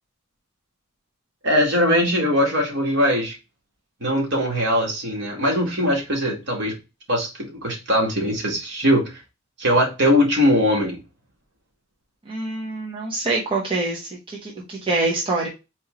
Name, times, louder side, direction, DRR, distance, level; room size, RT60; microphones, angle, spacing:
voice 1, 1.4-3.4 4.0-6.7 7.1-9.1 9.6-11.0, equal, 55° right, -1 dB, 2.1 m, -21 dB
voice 2, 12.3-15.5, right 3 dB, 25° right, -3 dB, 0.9 m, -25 dB
4.3 x 3.2 x 3.7 m, 0.27 s
head